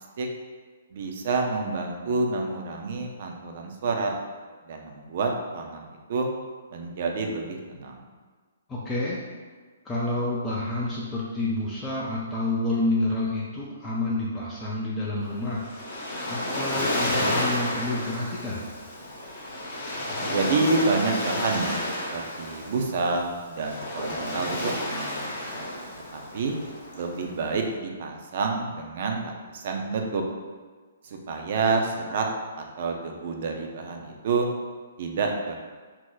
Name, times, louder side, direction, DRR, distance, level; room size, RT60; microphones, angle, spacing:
voice 1, 0.9-4.1 4.7-6.3 6.7-8.0 20.3-21.8 22.1-25.3 26.1-26.6 27.0-30.2 31.0-32.3 32.6-34.5 35.0-35.6, right 3 dB, 50° right, 2 dB, 0.5 m, -28 dB
voice 2, 8.7-9.2 9.8-15.6 16.3-18.7, left 2 dB, 15° left, -7 dB, 0.5 m, -29 dB
Waves surf, 15.2-27.6, left 1 dB, 40° left, 0.9 m, -31 dB
2.8 x 2.1 x 3.8 m, 1.5 s
figure-of-eight pair, 125°, 0 cm